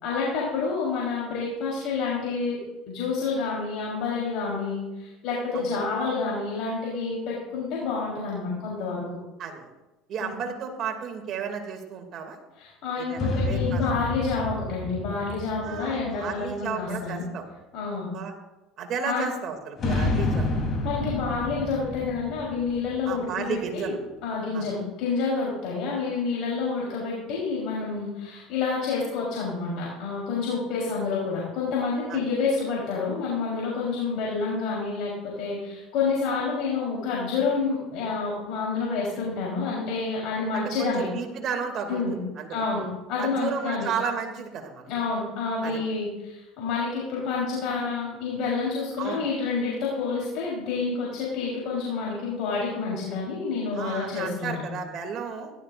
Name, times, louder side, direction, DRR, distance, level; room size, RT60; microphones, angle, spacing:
voice 1, 0.0-2.6 2.9-9.0 10.2-10.3 12.6-17.2 17.7-18.1 19.0-19.3 20.8-23.9 24.2-41.1 41.9-42.2 42.5-43.9 44.9-54.7, left 4 dB, 65° left, -5 dB, 3.8 m, -28 dB
voice 2, 10.1-12.4 13.0-13.8 15.6-17.4 18.1-18.3 18.8-20.5 23.0-24.0 24.5-24.6 32.1-32.2 40.5-42.6 43.2-44.9 45.6-45.8 49.0-49.2 53.7-55.5, right 6 dB, 50° right, 3 dB, 2.5 m, -33 dB
sound 1, 13.2-16.9 19.8-23.6, left 2 dB, 40° left, 3.4 m, -29 dB
16.5 x 12.5 x 2.5 m, 1.0 s
supercardioid pair, 90°, 0 cm